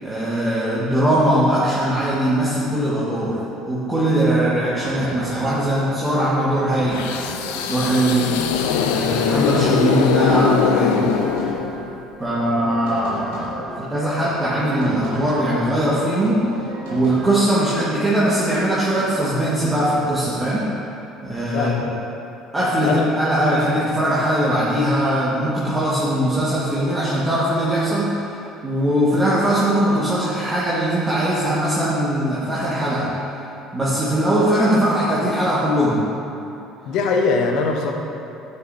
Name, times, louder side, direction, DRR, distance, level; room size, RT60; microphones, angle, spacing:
voice 1, 0.0-7.1 7.7-8.4 8.9-11.1 12.2-20.7 21.2-21.7 22.5-28.4 28.6-33.1 33.7-36.1, right 1 dB, 15° right, -9 dB, 1.6 m, -20 dB
sound 1, 4.5-7.7 8.2-9.8 10.2-11.9 12.2-13.9 14.1-15.8 16.2-17.3, right 2 dB, 85° right, 1.6 m, -35 dB
sound 2, 6.9-12.0, left 7 dB, 80° left, 0.4 m, -21 dB
voice 2, 21.5-22.0 22.8-23.1 36.9-37.9, left 4 dB, 65° left, 2 dB, 0.8 m, -21 dB
9.1 x 6.5 x 2.7 m, 2.8 s
hypercardioid pair, 65°, 0 cm